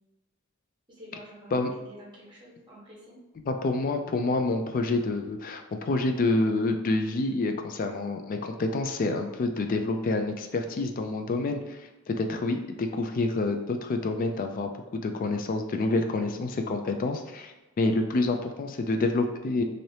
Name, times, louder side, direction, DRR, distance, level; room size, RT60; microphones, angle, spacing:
voice 1, 0.9-3.2 11.5-11.8 17.8-18.0, equal, 20° right, -4 dB, 1.1 m, -49 dB
voice 2, 3.5-11.6 12.1-19.6, left 2 dB, 40° left, 6 dB, 0.3 m, -28 dB
2.8 x 2.6 x 3.2 m, 1.1 s
head